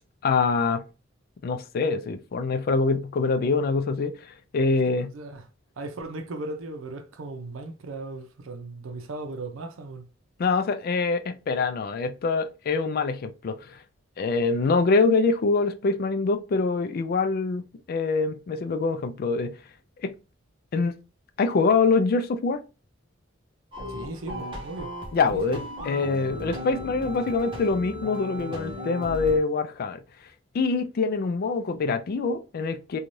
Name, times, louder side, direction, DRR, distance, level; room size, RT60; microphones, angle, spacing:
voice 1, 0.2-0.8 1.4-5.1 10.4-13.8 14.2-19.6 20.0-20.1 20.7-21.0 21.4-22.6 25.1-30.0 30.5-33.0, left 4 dB, 50° left, 0.3 m, -25 dB
voice 2, 5.0-5.4 5.8-10.1 23.9-24.9 25.2-25.6, right 2 dB, 90° right, 0.5 m, -37 dB
sound 1, 23.7-29.4, left 1 dB, 25° right, 0.8 m, -36 dB
2.6 x 2.3 x 3.1 m
head